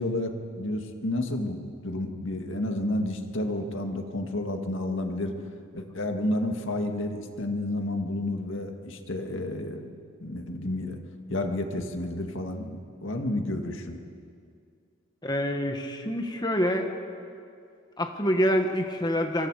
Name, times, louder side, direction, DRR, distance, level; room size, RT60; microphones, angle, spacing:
voice 1, 0.0-1.6 1.8-5.3 5.7-9.9 10.2-11.0 11.3-14.0, left 1 dB, 65° left, 4 dB, 2.1 m, -30 dB
voice 2, 15.2-16.9 18.0-19.5, equal, 20° left, 4 dB, 1.4 m, -26 dB
25.5 x 25.5 x 5.0 m, 2.3 s
head